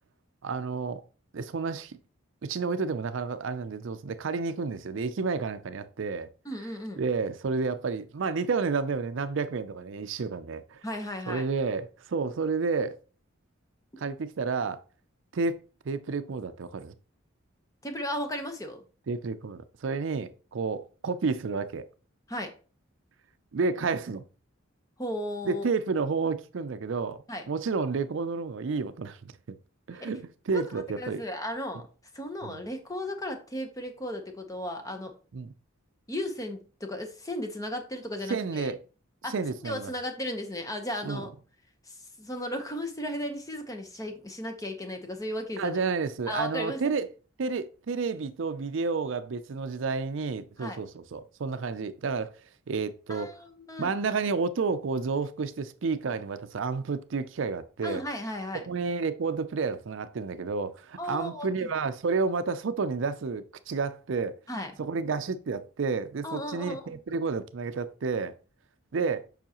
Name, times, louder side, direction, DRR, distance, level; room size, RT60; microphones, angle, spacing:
voice 1, 0.4-1.0 1.3-2.0 2.4-6.3 7.0-10.8 11.3-13.0 14.0-14.8 15.3-15.6 15.9-16.9 19.1-21.8 23.5-24.2 25.5-29.2 29.9-31.2 32.4-32.5 35.3-35.5 38.3-38.8 39.3-39.9 41.0-41.2 45.6-47.1 47.4-52.3 52.7-53.3 53.8-58.0 58.7-64.3 64.8-68.3 68.9-69.3, right 4 dB, 65° right, 0.4 m, -30 dB
voice 2, 6.4-7.0 10.8-11.5 17.8-18.8 22.3-22.5 25.0-25.6 27.3-27.5 30.0-30.1 30.5-30.6 31.0-31.9 32.1-35.1 36.1-38.7 39.2-39.3 39.6-41.3 41.9-45.8 46.3-46.8 50.6-50.8 53.1-53.9 57.8-58.6 61.0-61.7 64.5-64.7 66.2-67.0, left 1 dB, 15° left, 0.9 m, -35 dB
7.1 x 5.5 x 2.9 m
head